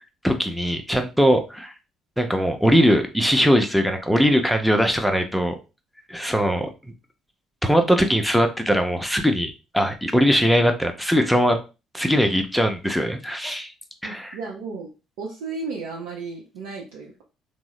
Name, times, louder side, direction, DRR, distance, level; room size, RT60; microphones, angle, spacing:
voice 1, 0.2-1.7 2.2-5.6 6.1-6.7 7.6-11.6 11.9-13.7 14.0-14.4, equal, ahead, 5 dB, 0.7 m, -20 dB
voice 2, 14.0-14.9 15.2-17.2, right 4 dB, 70° right, -2 dB, 0.6 m, -34 dB
3.5 x 2.0 x 3.1 m, 0.30 s
hypercardioid pair, 50°, 0 cm